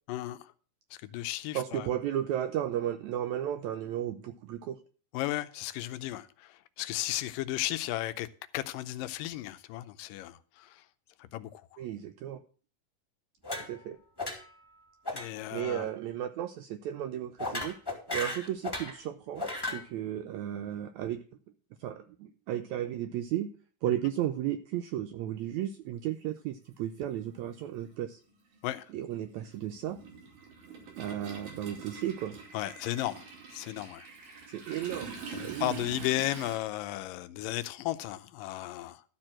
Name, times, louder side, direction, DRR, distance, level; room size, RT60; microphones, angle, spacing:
voice 1, 0.1-0.5 0.9-1.9 5.1-8.3 8.5-10.9 11.2-11.6 15.1-15.9 28.6-28.9 32.5-34.1 35.3-39.0, left 15 dB, 85° left, 2.3 m, -35 dB
voice 2, 1.5-4.8 11.8-12.4 13.7-14.0 15.5-17.8 18.1-21.2 21.8-23.5 23.8-28.2 28.9-30.0 31.0-32.4 34.5-35.8, right 11 dB, 85° right, 1.6 m, -34 dB
sound 1, 13.4-13.9 14.2-14.6 15.1-15.3 15.6-15.8 17.4-19.0 19.4-19.8, left 2 dB, 10° left, 1.6 m, -36 dB
Toilet flush, 26.1-26.2 27.4-27.6 27.9-36.6, right 5 dB, 65° right, 4.0 m, -45 dB
12.5 x 4.5 x 7.4 m
omnidirectional pair, 3.9 m